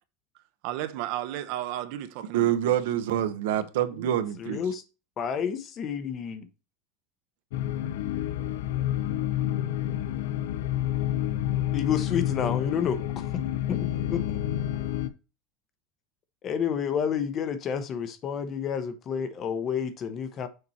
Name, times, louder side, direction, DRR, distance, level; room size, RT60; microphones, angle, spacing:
voice 1, 0.6-2.7 3.2-3.3, right 13 dB, 50° right, 0.7 m, -34 dB
voice 2, 2.3-4.6, right 11 dB, 85° right, 0.9 m, -26 dB
voice 3, 4.4-4.8 5.2-6.5 11.7-13.3 13.7-13.8 14.1-14.4 16.4-20.5, left 7 dB, 25° left, 0.8 m, -30 dB
sound 1, 7.5-15.1, left 12 dB, 80° left, 0.7 m, -29 dB
6.6 x 4.3 x 4.2 m
supercardioid pair, 175°, 0 cm